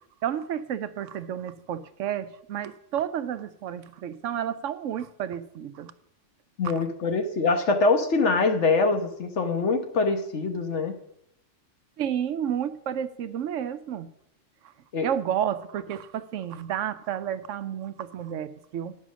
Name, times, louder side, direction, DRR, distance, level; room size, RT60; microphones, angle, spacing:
voice 1, 0.2-5.9 6.6-6.7 12.0-14.1 14.6-14.7 15.0-18.9, right 9 dB, 85° right, 13 dB, 1.0 m, -31 dB
voice 2, 6.6-11.0 14.9-15.1, left 3 dB, 70° left, 5 dB, 1.4 m, -24 dB
10.5 x 6.3 x 6.2 m, 0.77 s
omnidirectional pair, 1.3 m